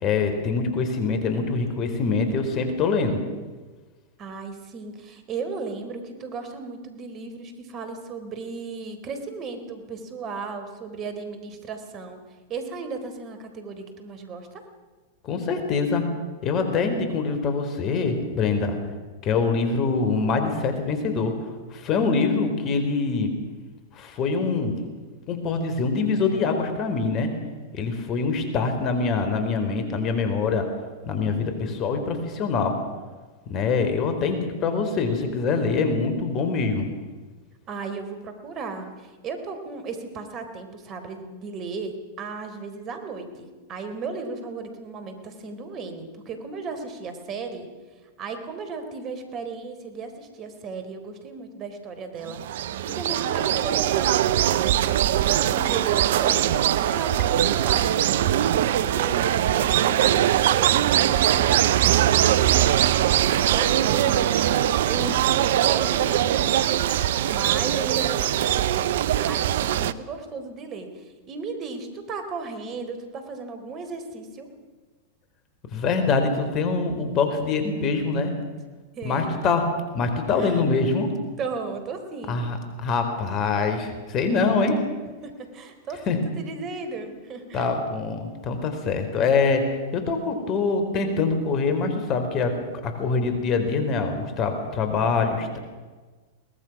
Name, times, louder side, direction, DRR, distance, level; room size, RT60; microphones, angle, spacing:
voice 1, 0.0-3.2 15.2-16.0 16.4-18.8 19.2-21.3 21.7-23.3 23.9-24.8 25.3-27.3 27.7-30.7 31.1-32.8 33.5-36.9 75.7-78.3 79.0-81.1 82.3-84.8 86.1-86.2 87.5-89.7 89.9-95.6, left 4 dB, 40° left, 7 dB, 4.1 m, -24 dB
voice 2, 4.2-12.2 12.5-14.6 37.7-47.7 48.2-54.7 55.1-62.7 63.5-66.7 67.3-68.9 69.3-74.5 78.9-79.5 80.4-80.6 81.4-82.4 85.2-87.8, right 4 dB, 35° right, 8 dB, 4.0 m, -35 dB
sound 1, 52.3-69.9, right 11 dB, 65° right, 0.8 m, -21 dB
23.0 x 19.0 x 6.1 m, 1.4 s
hypercardioid pair, 100°, 0 cm